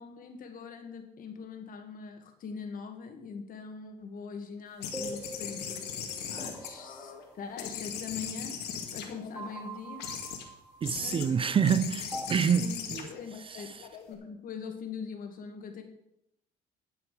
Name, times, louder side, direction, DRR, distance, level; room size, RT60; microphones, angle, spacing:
voice 1, 0.0-5.9 6.3-8.6 8.9-10.1 11.0-11.5 12.6-13.7 14.1-15.8, left 5 dB, 55° left, 2.1 m, -42 dB
sound 1, 4.8-7.2 7.6-9.5 10.0-10.4 10.8-11.3 11.6-14.1, left 8 dB, 80° left, 2.2 m, -39 dB
sound 2, 4.9-8.0 9.3-11.3 12.1-12.3, right 1 dB, 10° right, 1.3 m, -44 dB
voice 2, 10.8-13.1 13.5-13.9, right 7 dB, 30° right, 0.6 m, -27 dB
12.0 x 8.1 x 5.1 m
cardioid pair, 110°, 17 cm